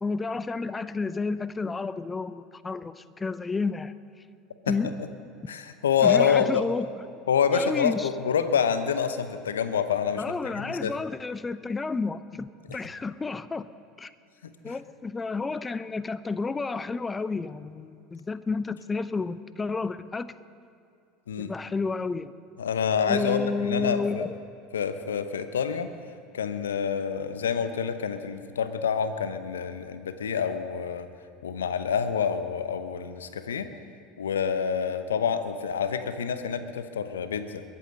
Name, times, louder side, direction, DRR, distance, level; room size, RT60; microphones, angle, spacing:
voice 1, 0.0-3.9 4.7-4.9 6.0-6.9 7.5-8.1 10.2-13.7 14.0-14.1 14.6-20.3 21.4-22.3 23.1-24.3, left 4 dB, 20° left, 15 dB, 0.6 m, -31 dB
voice 2, 5.5-6.7 7.3-10.9 12.7-12.8 14.4-14.8 21.3-21.5 22.6-24.3 24.7-25.9 26.3-31.1 31.4-33.7 34.2-37.6, left 7 dB, 75° left, 11 dB, 0.9 m, -27 dB
22.0 x 8.6 x 6.7 m, 2.5 s
figure-of-eight pair, 75°, 0 cm